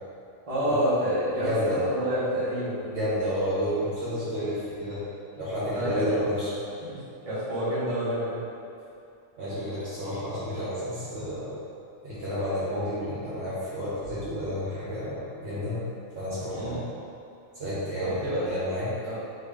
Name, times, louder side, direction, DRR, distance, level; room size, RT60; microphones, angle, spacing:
voice 1, 0.5-2.8 5.7-6.1 6.9-8.4 16.5-16.8 18.0-18.5 19.0-19.2, equal, 30° right, -11 dB, 1.0 m, -28 dB
voice 2, 1.4-1.8 2.9-5.0 5.4-6.5 9.4-11.5 12.0-15.8 16.2-16.9 17.5-18.9, equal, 60° right, -11 dB, 1.1 m, -30 dB
3.2 x 2.7 x 3.5 m, 2.6 s
omnidirectional pair, 1.4 m